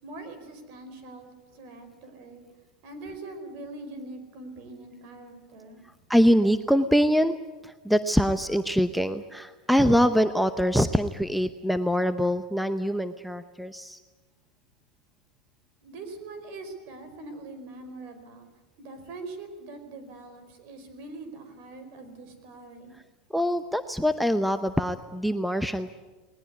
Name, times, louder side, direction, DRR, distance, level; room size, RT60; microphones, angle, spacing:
voice 1, 0.0-2.4 2.8-5.8 15.8-18.5 18.8-22.9, right 2 dB, 50° right, 8 dB, 4.8 m, -42 dB
voice 2, 6.1-7.4 7.6-14.0 23.3-25.9, equal, ahead, 11 dB, 0.7 m, -24 dB
20.0 x 19.5 x 9.6 m, 1.2 s
supercardioid pair, 135°, 4 cm